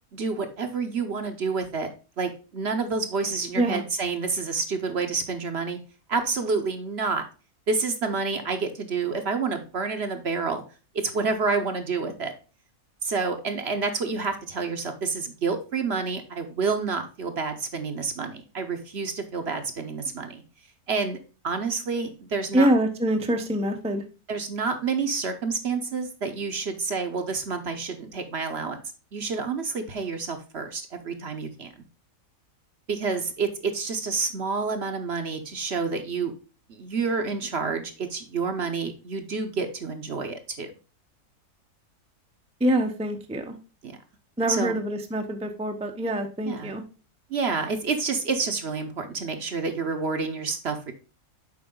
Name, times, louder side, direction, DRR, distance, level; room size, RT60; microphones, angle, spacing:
voice 1, 0.1-1.9 2.2-5.8 6.1-7.2 7.7-10.6 10.9-12.3 13.0-20.4 20.9-21.2 21.4-22.7 24.3-28.8 29.1-31.7 32.9-36.3 36.7-40.7 43.8-44.0 44.5-44.8 46.5-46.8 47.3-50.9, right 4 dB, 50° right, 7 dB, 1.0 m, -28 dB
voice 2, 22.5-24.0 42.6-43.5 44.4-46.8, right 1 dB, 5° right, 5 dB, 0.5 m, -25 dB
7.6 x 4.8 x 3.7 m, 0.33 s
omnidirectional pair, 1.6 m